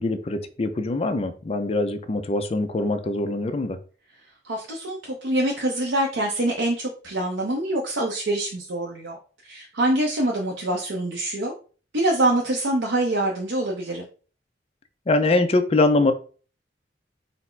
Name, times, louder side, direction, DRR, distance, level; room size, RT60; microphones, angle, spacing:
voice 1, 0.0-3.8 15.1-16.1, left 2 dB, 35° left, 0.4 m, -23 dB
voice 2, 4.4-11.5 11.9-14.0, right 1 dB, 85° right, 0.7 m, -25 dB
4.1 x 2.0 x 4.3 m
head